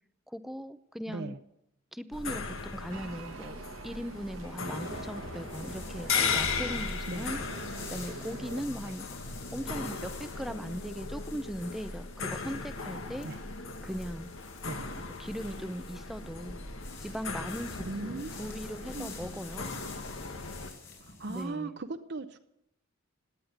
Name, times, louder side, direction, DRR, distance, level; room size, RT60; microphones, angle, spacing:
voice 1, 0.3-1.3 1.9-3.6 3.8-7.4 7.9-9.1 9.5-13.3 13.8-14.3 15.2-16.6 17.0-19.7 21.3-21.7, equal, ahead, 12 dB, 0.7 m, -39 dB
voice 2, 1.1-1.4 7.1-7.3 8.8-9.0 13.2-13.4 14.6-14.8 17.9-19.2 21.0-22.4, right 3 dB, 55° right, 7 dB, 0.8 m, -39 dB
sound 1, 2.1-20.7, left 4 dB, 80° left, 1.7 m, -37 dB
sound 2, 2.8-21.4, left 4 dB, 65° left, 5.2 m, -49 dB
sound 3, 2.9-8.6, right 3 dB, 75° right, 1.3 m, -45 dB
18.0 x 9.7 x 8.0 m, 0.81 s
head